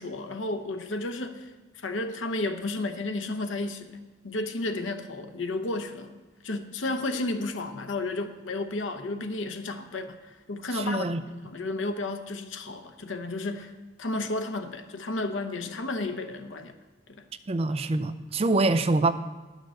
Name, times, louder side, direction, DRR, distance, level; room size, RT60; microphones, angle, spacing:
voice 1, 0.0-4.0 4.2-6.1 6.4-13.7 14.0-16.7 17.1-17.2, left 2 dB, 85° left, 8 dB, 0.9 m, -32 dB
voice 2, 10.7-11.2 17.5-19.1, right 2 dB, 30° right, 10 dB, 0.5 m, -25 dB
10.5 x 6.6 x 6.3 m, 1.3 s
head